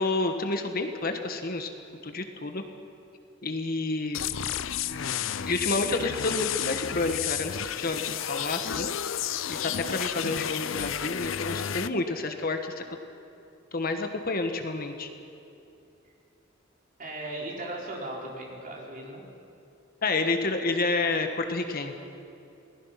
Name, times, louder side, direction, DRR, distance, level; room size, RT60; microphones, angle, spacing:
voice 1, 0.0-1.7 2.0-2.6 3.4-4.2 5.4-8.9 9.5-13.0 13.7-15.1 20.0-21.9, left 3 dB, 45° left, 6 dB, 1.5 m, -29 dB
sound 1, 4.1-11.9, left 9 dB, 75° left, 0.6 m, -32 dB
voice 2, 17.0-19.2, right 1 dB, 40° right, -2 dB, 4.3 m, -37 dB
28.0 x 19.5 x 5.9 m, 2.7 s
head